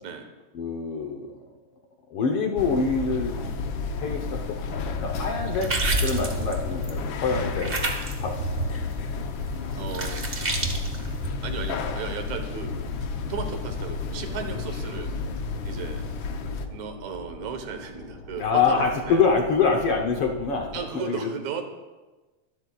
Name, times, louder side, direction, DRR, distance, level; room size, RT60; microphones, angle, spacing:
voice 1, 0.5-1.5 2.1-3.4 4.0-4.7 5.0-5.8 6.0-7.8 8.2-8.8 18.4-21.3, left 5 dB, 65° left, 2 dB, 1.6 m, -25 dB
sound 1, 2.6-16.7, left 4 dB, 90° left, 1.0 m, -32 dB
sound 2, 4.9-7.1 7.6-11.3, right 2 dB, 50° right, 0.6 m, -30 dB
voice 2, 9.7-10.2 11.4-12.7 13.3-15.1 15.6-16.0 16.7-19.2 20.7-21.6, right 5 dB, 75° right, 6 dB, 2.5 m, -35 dB
sound 3, 12.0-20.8, left 2 dB, 35° left, 4.2 m, -44 dB
23.0 x 12.0 x 2.4 m, 1.2 s
omnidirectional pair, 3.3 m